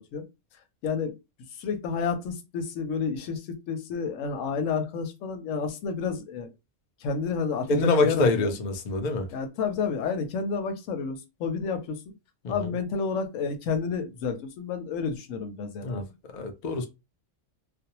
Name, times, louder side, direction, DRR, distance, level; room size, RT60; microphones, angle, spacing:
voice 1, 0.8-1.1 1.6-6.5 7.0-8.5 9.3-12.0 12.5-16.1, left 5 dB, 85° left, 1.0 m, -30 dB
voice 2, 7.7-9.3 12.4-12.7 15.8-16.0 16.3-16.9, left 3 dB, 55° left, 0.5 m, -25 dB
2.5 x 2.0 x 2.8 m
omnidirectional pair, 1.3 m